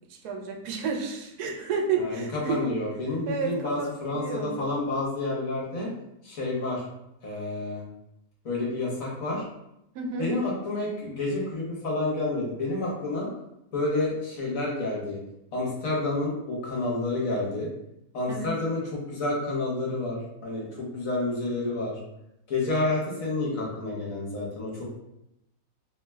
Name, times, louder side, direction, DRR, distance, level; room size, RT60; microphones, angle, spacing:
voice 1, 0.2-2.6 3.3-4.6 9.9-10.3 18.3-18.5, right 5 dB, 90° right, 1 dB, 1.2 m, -31 dB
voice 2, 2.0-5.9 6.2-6.8 7.2-7.8 8.4-9.4 10.2-13.3 13.7-15.2 15.5-17.7 18.1-22.0 22.5-24.9, left 2 dB, 65° left, -4 dB, 1.3 m, -29 dB
3.0 x 2.1 x 3.3 m, 0.84 s
omnidirectional pair, 1.6 m